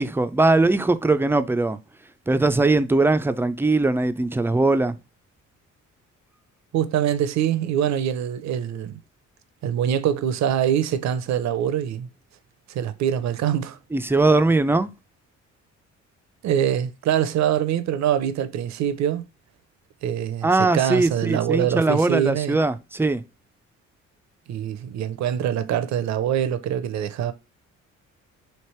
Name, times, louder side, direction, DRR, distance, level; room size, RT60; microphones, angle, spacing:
voice 1, 0.0-1.8 2.3-4.9 13.9-14.9 20.4-23.2, right 2 dB, 10° right, 0.3 m, -20 dB
voice 2, 6.7-9.0 9.6-12.1 12.7-13.8 16.4-19.2 20.0-22.6 24.5-27.3, right 10 dB, 65° right, 0.6 m, -24 dB
3.3 x 2.9 x 4.3 m
cardioid pair, 90°, 30 cm